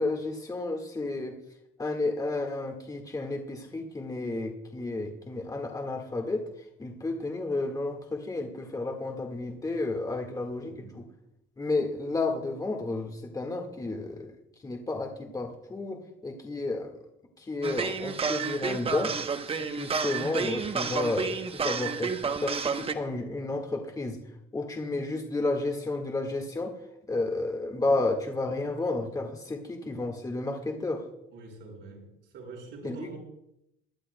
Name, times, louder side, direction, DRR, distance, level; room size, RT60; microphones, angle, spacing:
voice 1, 0.0-1.3 1.8-6.5 6.8-11.0 11.6-14.4 14.6-16.9 17.4-19.1 19.5-22.1 22.4-24.2 24.5-26.7 27.1-31.0 32.8-33.2, left 2 dB, 20° left, 3 dB, 1.7 m, -32 dB
voice 2, 10.1-11.0 31.3-32.1 32.3-33.2, right 3 dB, 65° right, 0 dB, 5.2 m, -45 dB
sound 1, 17.6-22.9, right 5 dB, 30° right, 0.9 m, -30 dB
22.5 x 11.5 x 2.2 m, 0.80 s
cardioid pair, 110°, 20 cm